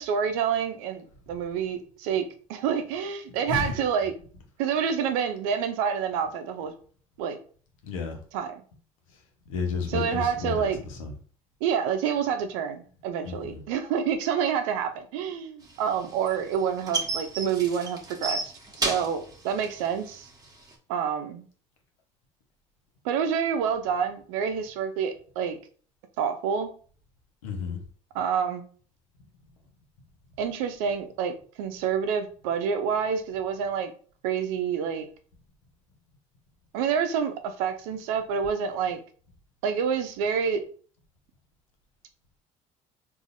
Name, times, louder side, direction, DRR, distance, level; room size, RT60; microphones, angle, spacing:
voice 1, 0.0-4.1 4.6-6.7 7.2-7.4 8.3-8.6 9.9-10.8 11.6-18.5 18.8-20.3 20.9-21.4 23.0-25.6 26.2-26.7 28.1-28.7 30.4-33.9 34.2-35.1 36.7-39.0 39.6-40.6, right 7 dB, 75° right, 8 dB, 0.6 m, -28 dB
voice 2, 7.8-8.2 9.5-10.7 11.0-11.1 13.2-13.6 27.4-27.8, left 5 dB, 90° left, 2 dB, 0.9 m, -31 dB
sound 1, 15.7-20.7, right 2 dB, 25° right, 1.1 m, -32 dB
4.0 x 2.7 x 2.6 m, 0.42 s
hypercardioid pair, 70°, 17 cm